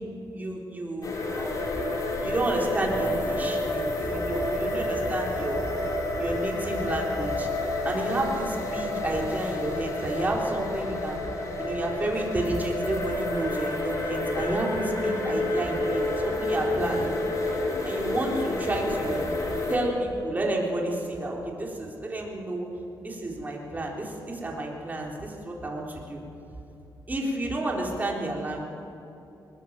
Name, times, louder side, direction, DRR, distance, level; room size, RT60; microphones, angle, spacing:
voice 1, 0.3-1.7 2.2-5.7 6.2-7.5 7.8-11.2 11.6-17.2 17.8-19.3 19.7-22.7 23.0-26.2 27.1-28.7, right 1 dB, 20° right, -1 dB, 3.9 m, -30 dB
sound 1, 1.0-19.8, left 2 dB, 50° left, 4.5 m, -29 dB
21.0 x 20.5 x 7.5 m, 2.8 s
cardioid pair, 115°, 7 cm